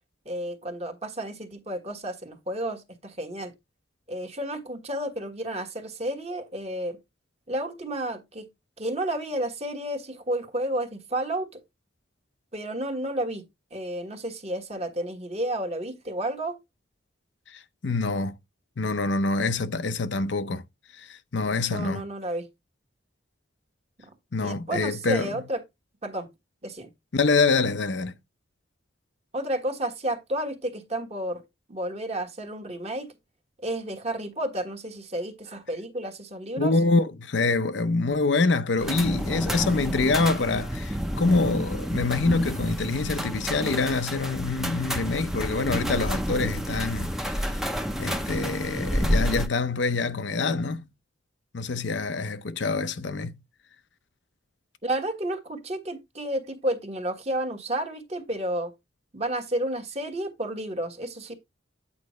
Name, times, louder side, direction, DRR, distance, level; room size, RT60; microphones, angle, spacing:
voice 1, 0.2-3.5 4.1-7.0 7.5-8.5 8.8-11.6 12.5-16.6 21.7-22.5 24.4-25.6 26.0-26.3 26.6-26.9 29.3-31.4 31.7-33.1 33.6-36.7 54.8-58.7 59.1-61.4, right 1 dB, 35° right, 1.4 m, -31 dB
voice 2, 17.5-18.3 18.8-20.6 20.9-22.0 24.3-25.4 27.1-28.1 36.6-47.5 48.0-50.9 51.5-53.4, left 3 dB, 70° left, 0.7 m, -26 dB
sound 1, 38.8-49.5, equal, ahead, 0.7 m, -29 dB
8.7 x 5.2 x 3.1 m
head